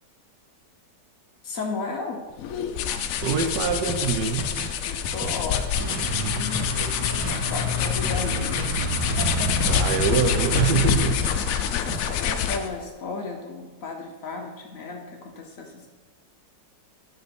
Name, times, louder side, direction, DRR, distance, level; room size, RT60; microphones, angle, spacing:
voice 1, 1.4-2.2 4.8-8.7 9.2-10.0 11.2-15.9, left 3 dB, 55° left, 2 dB, 1.1 m, -35 dB
sound 1, 2.4-12.8, left 8 dB, 75° left, 0.8 m, -26 dB
sound 2, 3.2-6.3 6.6-11.6 11.9-12.1, right 2 dB, 10° right, 0.8 m, -37 dB
voice 2, 3.2-4.5 9.7-11.2 11.5-11.6, right 6 dB, 75° right, 6 dB, 1.3 m, -24 dB
sound 3, 5.7-10.9, right 2 dB, 30° right, 0.5 m, -30 dB
8.7 x 4.1 x 5.2 m, 1.3 s
omnidirectional pair, 1.9 m